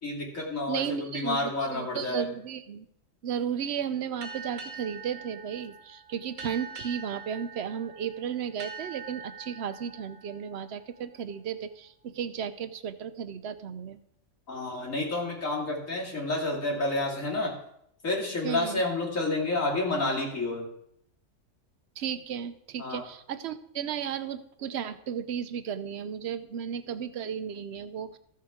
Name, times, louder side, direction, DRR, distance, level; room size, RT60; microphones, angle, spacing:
voice 1, 0.0-2.3 14.5-17.5 18.0-20.6 22.8-23.0, left 2 dB, 85° left, -2 dB, 2.8 m, -30 dB
voice 2, 0.7-2.9 3.2-14.0 18.4-18.8 22.0-28.2, right 8 dB, 60° right, 11 dB, 0.9 m, -34 dB
sound 1, 4.2-11.5, right 4 dB, 90° right, 1.7 m, -44 dB
14.5 x 7.6 x 3.6 m, 0.73 s
omnidirectional pair, 1.3 m